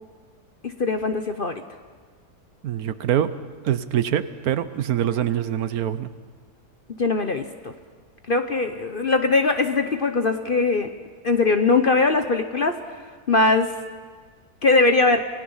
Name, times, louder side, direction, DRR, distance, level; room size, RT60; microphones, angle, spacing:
voice 1, 0.6-1.6 7.0-7.7 8.3-10.9 11.2-12.8 13.3-13.7 14.6-15.3, left 3 dB, 45° left, 7 dB, 0.8 m, -21 dB
voice 2, 2.6-3.3 3.6-6.1, right 10 dB, 70° right, 13 dB, 1.2 m, -24 dB
28.0 x 18.0 x 5.6 m, 1.5 s
omnidirectional pair, 1.7 m